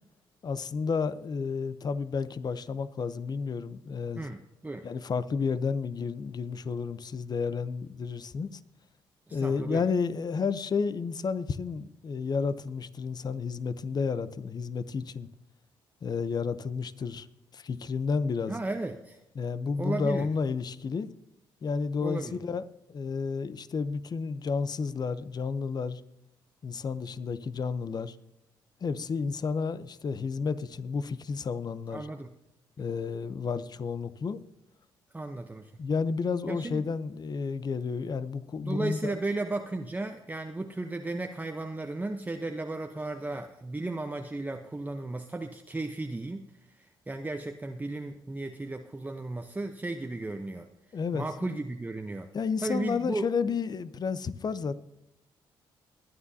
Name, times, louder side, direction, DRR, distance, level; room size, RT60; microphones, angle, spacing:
voice 1, 0.4-4.3 4.8-8.6 9.3-15.3 16.0-17.3 17.5-18.5 19.4-21.1 21.6-26.0 26.6-28.2 28.8-32.1 32.8-34.4 35.8-39.1 50.9-51.2 52.3-54.7, left 5 dB, 45° left, 0.8 m, -31 dB
voice 2, 4.2-4.9 9.3-9.8 18.5-19.2 19.8-20.3 22.0-22.4 31.9-32.3 35.1-35.7 36.5-36.9 38.6-46.4 46.8-50.7 51.1-52.3 52.6-53.3, right 2 dB, 15° right, 0.9 m, -35 dB
22.0 x 9.6 x 2.8 m
supercardioid pair, 70°, 10 cm